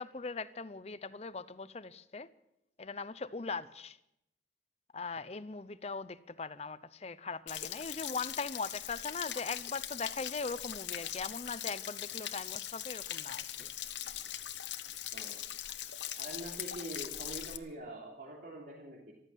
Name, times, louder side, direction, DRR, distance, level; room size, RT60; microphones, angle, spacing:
voice 1, 0.0-2.3 2.8-4.0 4.9-13.7, left 4 dB, 35° left, 0.6 m, -40 dB
Stream / Splash splatter / Trickle dribble, 7.5-17.6, left 11 dB, 90° left, 1.0 m, -41 dB
voice 2, 16.2-19.1, right 1 dB, 55° right, 3.3 m, -44 dB
14.5 x 13.0 x 7.5 m
head